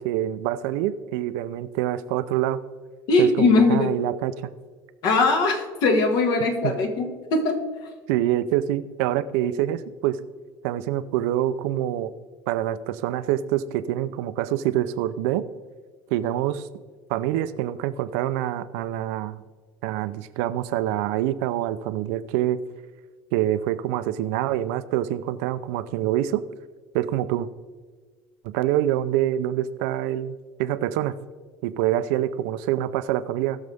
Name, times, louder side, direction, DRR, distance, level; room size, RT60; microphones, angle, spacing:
voice 1, 0.0-2.6 3.2-4.3 6.6-6.8 8.1-10.2 10.6-12.1 12.5-15.5 16.1-16.7 17.1-19.4 19.8-22.6 23.3-26.4 26.9-27.5 28.4-31.2 31.6-33.6, right 12 dB, 85° right, 13 dB, 0.6 m, -26 dB
voice 2, 3.1-3.9 5.0-7.6, left 3 dB, 60° left, 5 dB, 1.9 m, -20 dB
19.5 x 6.6 x 3.6 m, 1.5 s
cardioid pair, 145°, 8 cm